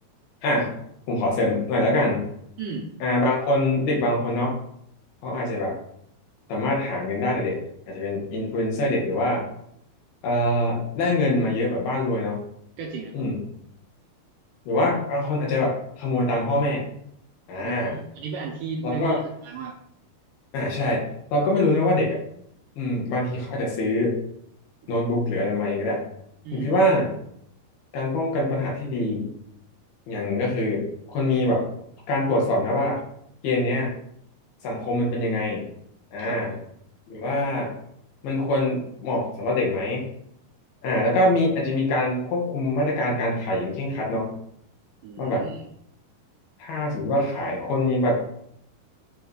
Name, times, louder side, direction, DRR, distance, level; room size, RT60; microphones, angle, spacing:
voice 1, 0.4-0.7 1.1-2.2 3.0-4.6 5.2-5.8 6.5-7.6 7.9-9.5 10.2-12.4 13.1-13.4 14.7-16.9 17.5-18.0 18.8-19.2 20.5-22.2 22.8-24.2 24.9-26.0 26.5-27.1 27.9-29.3 30.1-31.7 32.1-33.0 33.4-33.9 34.6-35.7 36.1-36.5 37.1-37.7 38.2-40.0 40.8-44.4 45.2-45.5 46.6-48.1, left 1 dB, 75° left, -3 dB, 3.6 m, -24 dB
voice 2, 2.6-2.9 12.8-13.2 17.6-19.8 26.4-26.8 36.2-36.6 45.0-45.7, right 5 dB, 75° right, 0 dB, 2.0 m, -34 dB
8.4 x 5.1 x 3.2 m, 0.72 s
omnidirectional pair, 4.5 m